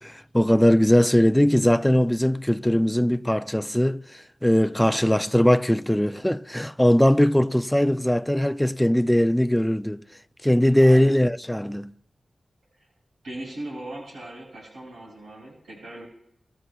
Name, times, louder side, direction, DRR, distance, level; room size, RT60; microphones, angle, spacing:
voice 1, 0.0-10.0 10.4-11.9, equal, 5° left, 0.5 m, -20 dB
voice 2, 10.8-11.2 13.2-16.1, right 1 dB, 90° right, 6.0 m, -38 dB
29.5 x 13.0 x 2.3 m
cardioid pair, 40°, 0 cm